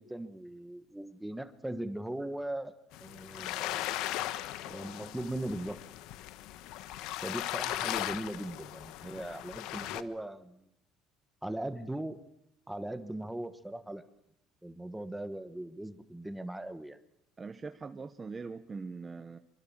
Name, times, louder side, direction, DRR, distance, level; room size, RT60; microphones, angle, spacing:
voice 1, 0.0-2.8 3.0-3.9 4.7-5.8 7.2-10.7 11.4-12.2 12.7-14.0 14.6-17.0, right 1 dB, 5° right, 10 dB, 1.3 m, -39 dB
sound 1, 2.9-10.0, left 14 dB, 75° left, 1.3 m, -38 dB
voice 2, 17.4-19.4, right 4 dB, 20° right, 9 dB, 1.0 m, -42 dB
25.5 x 25.0 x 7.3 m, 0.77 s
cardioid pair, 140°, 0 cm